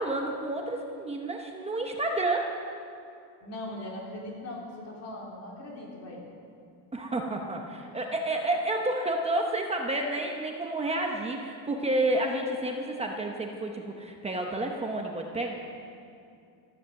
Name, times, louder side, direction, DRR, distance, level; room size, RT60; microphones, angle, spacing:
voice 1, 0.0-2.5 6.9-15.5, right 2 dB, 15° right, 1 dB, 0.8 m, -30 dB
voice 2, 3.4-6.2, left 1 dB, 30° left, -2 dB, 3.4 m, -40 dB
14.5 x 13.5 x 6.6 m, 2.5 s
cardioid pair, 175°, 48 cm